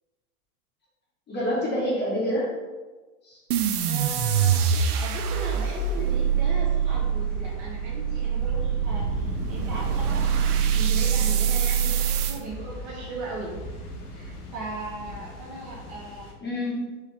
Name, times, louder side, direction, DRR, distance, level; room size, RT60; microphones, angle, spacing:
voice 1, 1.3-2.5 3.2-3.4 16.4-17.0, equal, 25° left, -6 dB, 1.4 m, -27 dB
sound 1, 3.5-16.3, left 1 dB, 80° left, 1.0 m, -38 dB
sound 2, 3.5-12.4, right 8 dB, 85° right, 0.6 m, -24 dB
voice 2, 3.8-13.5 14.1-16.5, right 2 dB, 40° right, -4 dB, 1.4 m, -38 dB
4.7 x 2.7 x 3.4 m, 1.3 s
hypercardioid pair, 110°, 44 cm